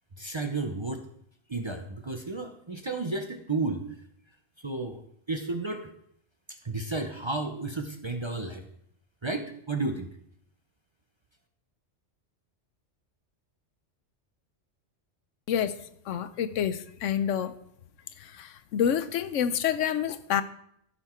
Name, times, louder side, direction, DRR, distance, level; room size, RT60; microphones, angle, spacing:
voice 1, 0.2-1.0 1.5-3.8 4.6-5.0 5.3-5.9 6.5-8.6 9.2-10.1, right 3 dB, 30° right, 5 dB, 0.6 m, -32 dB
voice 2, 16.1-17.5 18.2-20.4, left 9 dB, 80° left, 13 dB, 1.0 m, -28 dB
13.5 x 5.7 x 4.4 m, 0.70 s
omnidirectional pair, 1.3 m